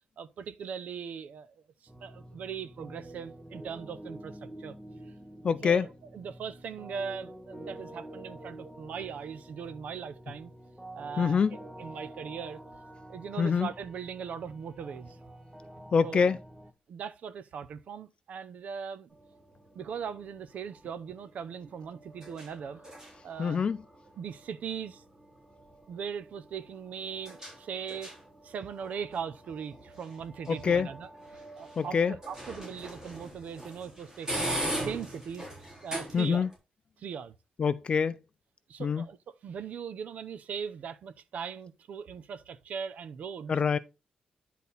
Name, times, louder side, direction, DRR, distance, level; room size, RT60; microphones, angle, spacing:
voice 1, 0.2-1.5 2.0-4.7 5.6-10.5 10.9-12.6 13.1-15.2 16.0-16.3 16.9-19.1 19.7-22.8 23.2-23.6 24.2-25.0 25.9-28.1 28.4-31.1 31.5-35.5 35.8-36.5 37.0-37.3 38.7-43.6, right 7 dB, 60° right, 0.7 m, -39 dB
sound 1, 1.9-16.7, right 1 dB, 5° right, 0.8 m, -48 dB
voice 2, 5.4-5.9 11.2-11.6 13.4-13.7 15.9-16.4 23.4-23.8 30.5-30.9 31.8-32.1 36.1-36.5 37.6-38.2 38.8-39.1 43.5-43.8, left 6 dB, 40° left, 0.4 m, -25 dB
sound 2, 19.1-36.6, right 1 dB, 20° right, 3.8 m, -42 dB
10.5 x 4.1 x 4.0 m
wide cardioid pair, 165°, 3 cm